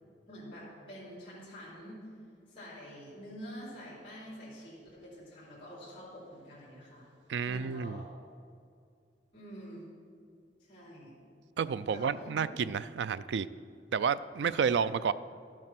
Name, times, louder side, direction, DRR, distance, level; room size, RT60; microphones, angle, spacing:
voice 1, 0.3-2.0 2.5-7.0 7.4-8.1 9.3-9.9 10.7-11.1 11.9-12.5 14.7-14.8, equal, 30° left, -7 dB, 3.4 m, -47 dB
voice 2, 7.3-8.0 11.6-13.5 13.9-15.1, right 6 dB, 75° right, 16 dB, 0.3 m, -30 dB
12.0 x 7.6 x 5.9 m, 2.3 s
head